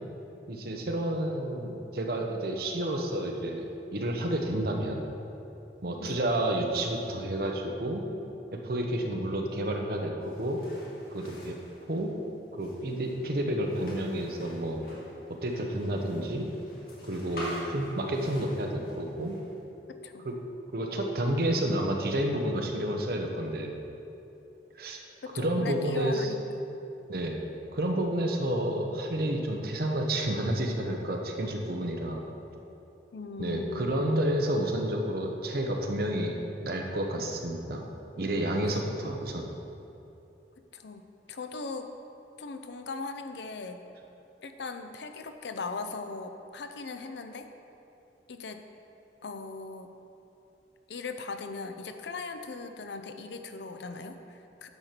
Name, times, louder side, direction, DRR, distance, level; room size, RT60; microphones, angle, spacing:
voice 1, 0.5-5.0 5.8-8.0 8.5-10.6 11.1-11.6 11.9-12.1 12.6-14.8 15.3-16.5 17.0-19.4 20.2-20.3 20.7-23.7 24.8-25.0 25.4-26.3 27.1-27.4 27.7-32.2 33.4-37.8 38.2-39.5, right 1 dB, 60° right, 2 dB, 0.9 m, -30 dB
sound 1, 10.2-19.6, equal, 55° left, 1.9 m, -47 dB
voice 2, 25.2-26.4 33.1-34.0 38.6-38.9 40.7-41.9 42.4-43.9 44.4-47.5 48.3-48.6 49.2-49.9 50.9-54.7, left 4 dB, 75° left, 7 dB, 0.6 m, -39 dB
9.7 x 4.4 x 6.7 m, 2.8 s
head